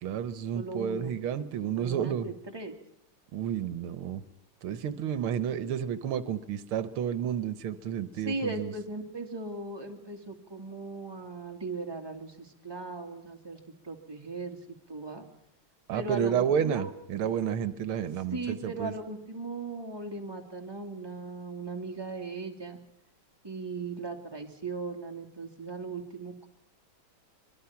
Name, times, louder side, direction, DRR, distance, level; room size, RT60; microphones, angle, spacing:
voice 1, 0.0-2.3 3.3-4.2 4.6-8.7 15.9-18.9, right 8 dB, 85° right, 13 dB, 1.9 m, -31 dB
voice 2, 0.5-1.1 1.7-2.8 8.2-13.6 13.8-14.6 14.9-15.2 15.9-16.9 18.3-22.8 23.4-26.5, right 3 dB, 10° right, 2 dB, 2.5 m, -38 dB
24.5 x 23.0 x 5.9 m, 0.77 s
omnidirectional pair, 2.3 m